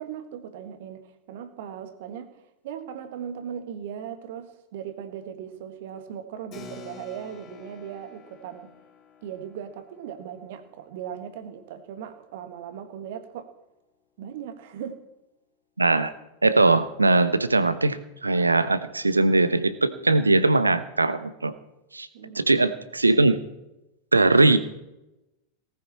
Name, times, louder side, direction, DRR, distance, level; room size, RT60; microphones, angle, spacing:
voice 1, 0.0-8.7 9.2-13.5 14.2-15.0 22.1-22.4, right 8 dB, 50° right, 9 dB, 1.6 m, -38 dB
Keyboard (musical), 6.5-12.5, left 6 dB, 35° left, 3.6 m, -50 dB
voice 2, 15.8-16.1 16.4-21.5 21.9-22.1 22.3-23.4 24.1-24.6, right 2 dB, 80° right, 14 dB, 0.9 m, -20 dB
18.5 x 13.5 x 4.3 m, 0.94 s
figure-of-eight pair, 90°, 0 cm